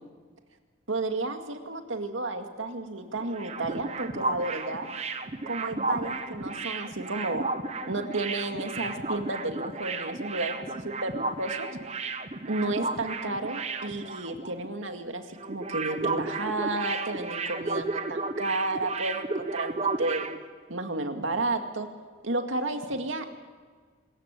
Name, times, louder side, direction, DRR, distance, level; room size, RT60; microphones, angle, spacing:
voice 1, 0.9-4.9 5.5-7.5 7.9-11.7 12.5-20.3 20.7-21.9 22.2-23.3, right 2 dB, 90° right, 6 dB, 2.1 m, -32 dB
sound 1, 3.1-14.7 14.9-15.1 15.4-20.4, right 3 dB, 35° right, 1.2 m, -33 dB
25.5 x 14.5 x 8.4 m, 1.5 s
head